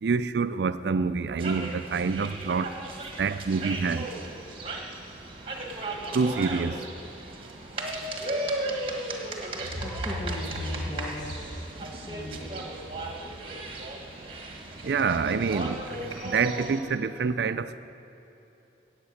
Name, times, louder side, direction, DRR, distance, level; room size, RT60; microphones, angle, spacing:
voice 1, 0.0-2.7 3.2-4.1 6.1-6.9 14.8-17.8, right 5 dB, 65° right, 11 dB, 0.4 m, -27 dB
sound 1, 1.4-16.8, right 2 dB, 30° right, 1.4 m, -36 dB
voice 2, 9.7-12.6, left 1 dB, 20° left, -2 dB, 1.2 m, -35 dB
16.5 x 8.1 x 6.5 m, 2.9 s
head